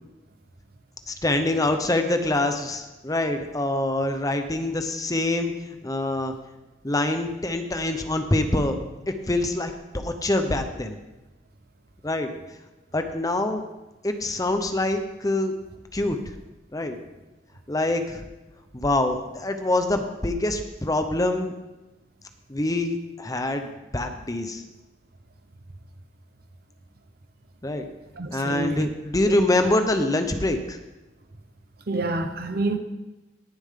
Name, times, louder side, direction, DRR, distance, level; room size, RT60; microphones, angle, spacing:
voice 1, 1.1-6.3 6.8-11.0 12.0-12.3 12.9-13.6 14.0-15.5 15.9-16.2 16.7-17.0 17.7-18.2 18.7-21.5 22.5-24.6 27.6-27.8 28.3-30.8, left 2 dB, 20° left, 0.8 m, -25 dB
voice 2, 28.2-28.9 29.3-29.4 31.9-32.8, right 2 dB, 55° right, 0.9 m, -28 dB
18.0 x 7.1 x 3.8 m
head